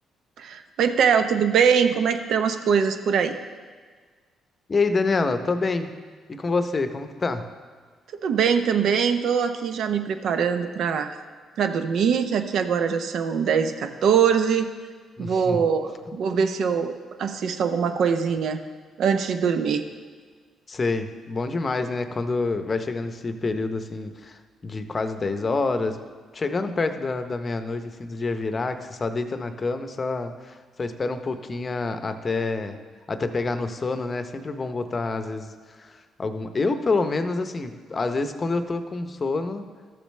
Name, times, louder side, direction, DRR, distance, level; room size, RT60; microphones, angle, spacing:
voice 1, 0.4-3.3 8.2-11.1 11.6-14.7 15.2-16.9 17.2-18.6 19.0-19.8, right 7 dB, 70° right, 8 dB, 0.6 m, -22 dB
voice 2, 4.7-5.9 6.3-7.5 15.2-15.7 16.1-16.5 20.7-26.0 26.3-32.8 33.1-39.7, left 3 dB, 35° left, 8 dB, 0.7 m, -27 dB
13.5 x 6.9 x 3.2 m, 1.5 s
cardioid pair, 90°, 0 cm